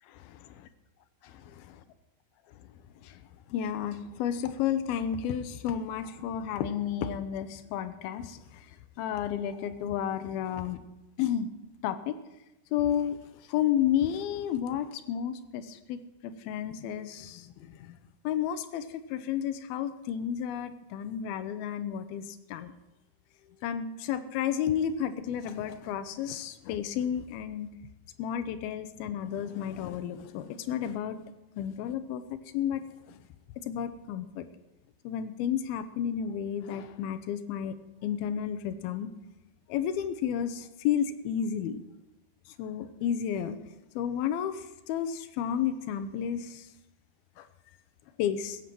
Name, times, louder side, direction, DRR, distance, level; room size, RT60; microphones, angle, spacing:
voice 1, 3.5-8.4 9.0-10.8 11.2-11.5 11.8-12.2 12.7-13.2 13.5-17.5 17.8-17.9 18.2-22.2 22.5-22.7 23.6-27.7 28.2-31.2 31.6-32.2 32.5-32.8 33.6-34.4 35.0-37.7 38.0-39.1 39.7-41.8 42.6-43.6 44.0-44.6 44.9-46.6 47.4-47.5 48.2-48.6, left 9 dB, 80° left, 11 dB, 2.5 m, -31 dB
16.0 x 8.7 x 7.7 m, 0.94 s
omnidirectional pair, 4.8 m